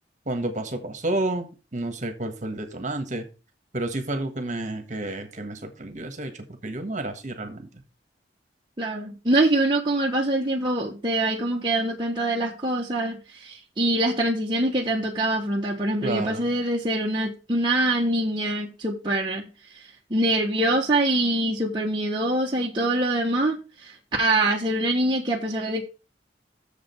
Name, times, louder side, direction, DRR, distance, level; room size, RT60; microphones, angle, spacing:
voice 1, 0.2-3.3 3.7-7.7 16.0-16.5, right 2 dB, 45° right, 1.5 m, -30 dB
voice 2, 8.8-19.5 19.7-25.8, right 1 dB, 25° right, 1.1 m, -24 dB
7.0 x 5.0 x 6.9 m
head